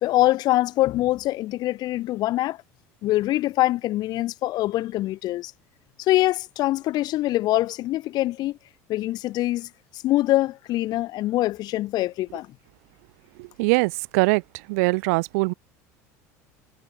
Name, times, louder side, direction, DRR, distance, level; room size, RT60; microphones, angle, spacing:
voice 1, 0.0-2.6 3.0-5.5 6.0-8.6 8.9-12.5, left 16 dB, 55° left, 1.2 m, -24 dB
voice 2, 13.4-14.4 14.7-15.5, right 29 dB, 70° right, 0.6 m, -22 dB
hypercardioid pair, 80°, 8 cm